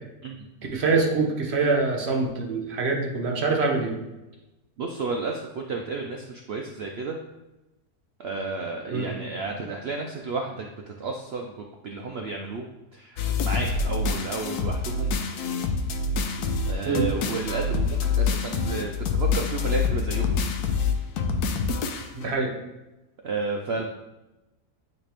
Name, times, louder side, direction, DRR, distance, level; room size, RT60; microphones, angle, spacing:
voice 1, 0.7-4.0 8.9-9.1 16.9-17.1 22.1-22.5, right 3 dB, 50° right, 1 dB, 1.0 m, -24 dB
voice 2, 4.8-7.2 8.2-12.6 12.9-15.1 16.7-20.4 23.2-23.9, right 4 dB, 85° right, 2 dB, 0.5 m, -32 dB
sound 1, 13.2-22.3, left 5 dB, 75° left, 1.1 m, -26 dB
8.8 x 3.3 x 3.4 m, 1.0 s
omnidirectional pair, 1.7 m